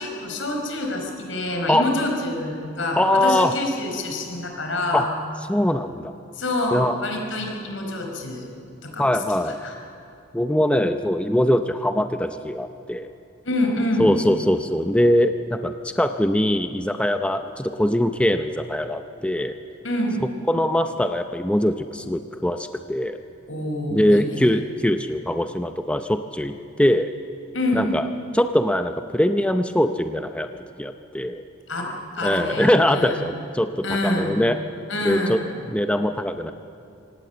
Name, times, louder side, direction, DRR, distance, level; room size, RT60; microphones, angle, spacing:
voice 1, 0.0-5.1 6.3-8.5 8.8-9.7 13.4-14.1 19.8-20.2 23.5-24.5 27.5-27.9 31.7-31.9 32.1-33.3 33.8-34.4 34.9-35.5, left 1 dB, 80° left, 1 dB, 4.7 m, -27 dB
voice 2, 3.0-3.5 4.9-5.1 5.5-6.1 6.7-7.0 9.0-9.6 10.3-13.1 14.0-19.6 20.5-23.2 23.9-27.1 27.7-28.1 28.3-30.5 30.8-31.4 32.2-34.6 35.0-35.4 35.7-36.5, left 1 dB, 5° left, 8 dB, 0.6 m, -22 dB
25.5 x 18.0 x 8.0 m, 2.8 s
head